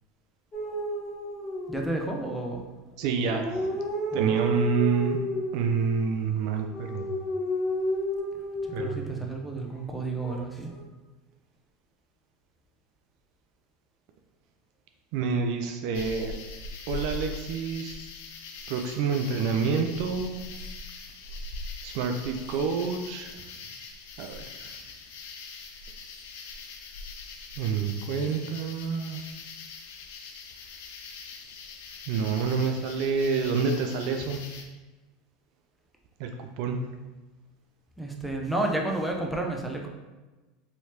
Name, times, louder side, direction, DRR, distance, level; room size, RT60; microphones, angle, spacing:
sound 1, 0.5-2.2 3.0-5.7 6.5-9.1 10.2-10.8, equal, 35° left, 0.9 m, -31 dB
voice 1, 1.7-2.7 4.1-4.3 8.8-10.7 38.0-39.9, right 2 dB, ahead, 0 dB, 0.6 m, -31 dB
voice 2, 3.0-3.7 4.1-5.2 5.5-7.1 8.7-9.2 15.1-16.3 16.9-18.0 18.7-20.5 21.8-23.4 24.2-24.8 27.6-29.2 32.1-34.4 36.2-36.8, right 5 dB, 60° right, 4 dB, 0.3 m, -28 dB
sound 2, 15.9-34.7, left 3 dB, 70° left, 0.4 m, -42 dB
3.2 x 2.8 x 2.8 m, 1.2 s
hypercardioid pair, 85°, 0 cm